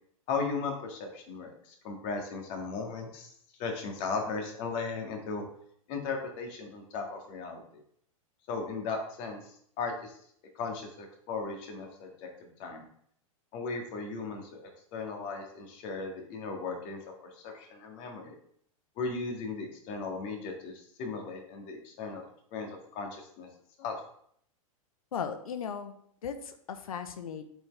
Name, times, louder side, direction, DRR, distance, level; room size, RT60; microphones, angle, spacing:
voice 1, 0.3-3.3 3.6-5.4 5.9-7.6 8.5-10.2 10.6-12.8 13.5-18.4 19.0-23.5 23.8-24.0, left 4 dB, 45° left, 2 dB, 1.9 m, -37 dB
voice 2, 25.1-25.9 26.2-27.5, left 7 dB, 80° left, 9 dB, 0.8 m, -37 dB
7.8 x 4.6 x 3.3 m, 0.67 s
hypercardioid pair, 115°, 18 cm